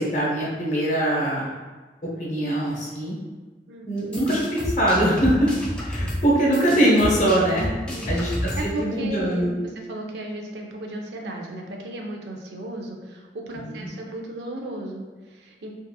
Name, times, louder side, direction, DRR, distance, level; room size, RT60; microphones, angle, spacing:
voice 1, 0.0-1.5 2.0-3.1 3.8-5.5 5.8-7.7 8.1-9.5 13.6-13.9, right 1 dB, 45° left, -4 dB, 0.7 m, -22 dB
voice 2, 2.1-2.5 3.7-4.0 7.9-15.7, right 1 dB, 75° right, 1 dB, 0.4 m, -35 dB
sound 1, 4.0-8.8, equal, 5° left, 0.4 m, -30 dB
2.7 x 2.4 x 2.2 m, 1.3 s
head